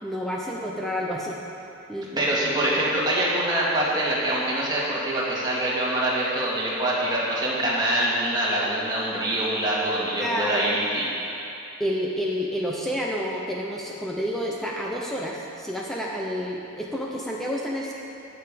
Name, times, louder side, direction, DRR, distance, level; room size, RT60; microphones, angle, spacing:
voice 1, 0.0-1.4 1.9-2.3 10.2-10.6 11.8-17.9, equal, ahead, -3 dB, 0.8 m, -29 dB
voice 2, 2.2-11.0, right 1 dB, 20° right, -7 dB, 2.2 m, -24 dB
17.5 x 6.9 x 5.2 m, 2.8 s
head